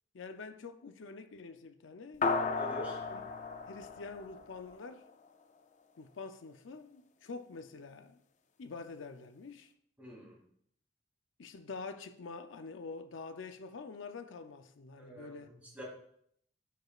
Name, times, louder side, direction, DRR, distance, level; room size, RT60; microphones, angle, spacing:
voice 1, 0.1-2.3 3.1-3.2 3.6-5.1 6.0-8.2 8.6-9.7 11.4-15.5, left 4 dB, 85° left, 0.6 m, -46 dB
sound 1, 2.2-4.9, left 4 dB, 40° left, 0.4 m, -35 dB
voice 2, 2.6-3.0 10.0-10.4 15.0-15.8, right 1 dB, 10° right, 2.5 m, -47 dB
13.5 x 4.9 x 2.4 m
head